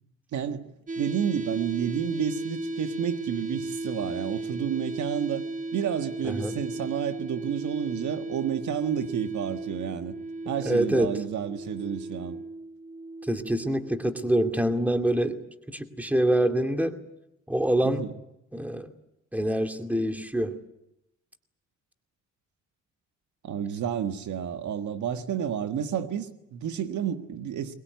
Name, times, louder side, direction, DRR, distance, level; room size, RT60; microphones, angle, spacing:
voice 1, 0.3-0.7 1.0-5.5 5.7-10.1 10.5-12.4 17.8-18.1 23.4-27.7, right 8 dB, 75° right, 1.8 m, -30 dB
sound 1, 0.9-14.8, right 2 dB, 25° right, 1.2 m, -36 dB
voice 2, 10.6-11.2 13.3-15.4 15.7-17.0 17.5-18.0 18.5-18.9 19.3-20.6, right 1 dB, 5° right, 2.4 m, -25 dB
23.0 x 20.0 x 9.5 m
cardioid pair, 90°, 30 cm